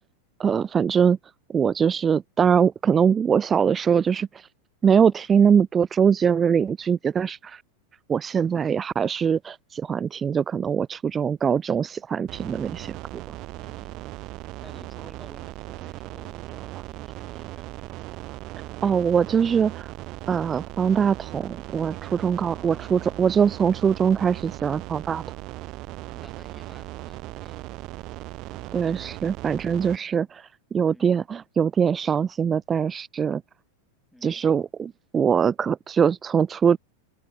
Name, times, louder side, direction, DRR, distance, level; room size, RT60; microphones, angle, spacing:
voice 1, 0.4-1.2 1.5-4.5 4.8-7.6 8.1-13.0 18.8-19.9 20.3-25.2 28.7-33.4 34.2-36.8, right 7 dB, 20° right, 0.3 m, -22 dB
sound 1, 12.3-30.0, right 19 dB, 40° right, 0.7 m, -38 dB
voice 2, 13.6-14.1 14.6-17.7 22.4-23.3 26.0-27.8 28.5-29.4 29.8-30.1 30.9-31.2 34.1-34.5, equal, ahead, 5.4 m, -53 dB
figure-of-eight pair, 90°, 0 cm